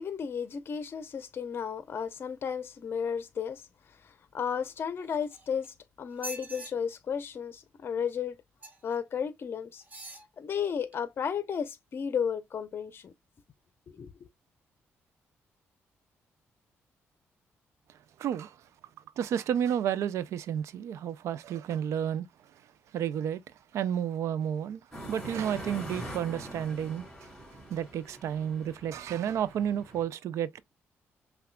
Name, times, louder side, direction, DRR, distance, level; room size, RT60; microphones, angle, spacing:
voice 1, 0.0-3.6 4.0-8.4 8.8-9.8 10.4-13.1 13.9-14.3, left 7 dB, 50° left, 0.6 m, -33 dB
sound 1, 5.0-5.7 6.1-6.7 8.6-9.0 9.8-10.3 10.9-11.0, right 2 dB, 30° right, 1.3 m, -44 dB
voice 2, 18.2-18.6 19.2-22.3 22.9-23.4 23.7-24.8 25.1-27.1 27.7-30.6, right 9 dB, 75° right, 0.4 m, -31 dB
sound 2, 24.9-30.0, right 1 dB, 5° left, 3.0 m, -44 dB
5.7 x 2.3 x 2.2 m
cardioid pair, 95°, 5 cm